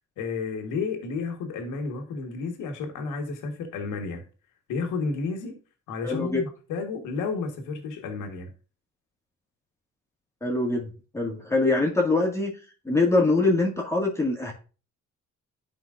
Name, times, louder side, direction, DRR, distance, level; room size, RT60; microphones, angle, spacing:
voice 1, 0.2-4.2 4.7-5.6 5.9-8.5, left 4 dB, 90° left, 1.6 m, -31 dB
voice 2, 6.0-6.4 10.4-10.9 11.1-12.5 12.9-14.5, left 2 dB, 10° left, 1.9 m, -23 dB
11.0 x 4.9 x 2.5 m
cardioid pair, 90°, 30 cm